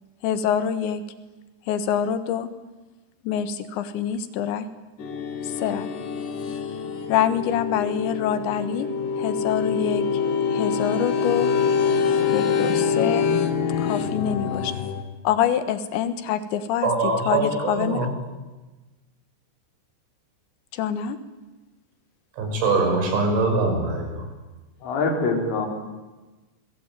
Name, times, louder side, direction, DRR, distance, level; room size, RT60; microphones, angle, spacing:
voice 1, 0.2-1.0 1.7-2.5 3.3-4.7 5.4-5.9 7.1-8.9 9.2-10.0 10.5-11.5 12.3-13.3 13.8-14.7 15.3-16.9 17.3-18.1 20.7-21.2, left 9 dB, 70° left, 11 dB, 3.6 m, -25 dB
sound 1, 5.0-15.0, left 6 dB, 55° left, 3.3 m, -25 dB
voice 2, 16.8-18.1 22.4-24.3, right 3 dB, 75° right, 4 dB, 7.7 m, -23 dB
voice 3, 24.8-25.7, left 3 dB, 90° left, 3 dB, 6.6 m, -24 dB
27.5 x 21.0 x 9.1 m, 1.2 s
omnidirectional pair, 5.5 m